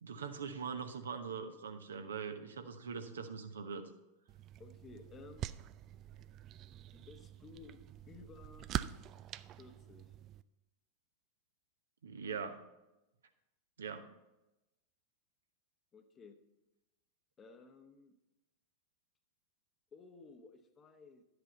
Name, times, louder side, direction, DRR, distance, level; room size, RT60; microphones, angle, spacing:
voice 1, 0.0-3.9 12.0-12.6 13.8-14.1, right 6 dB, 70° right, 7 dB, 0.9 m, -42 dB
sound 1, 4.3-10.4, right 12 dB, 35° right, 0.3 m, -45 dB
voice 2, 4.6-5.5 6.7-8.7 9.5-10.1 15.9-16.4 17.4-18.2 19.9-21.2, left 4 dB, 25° left, 7 dB, 1.0 m, -56 dB
11.5 x 8.0 x 4.0 m, 0.98 s
figure-of-eight pair, 90°, 0 cm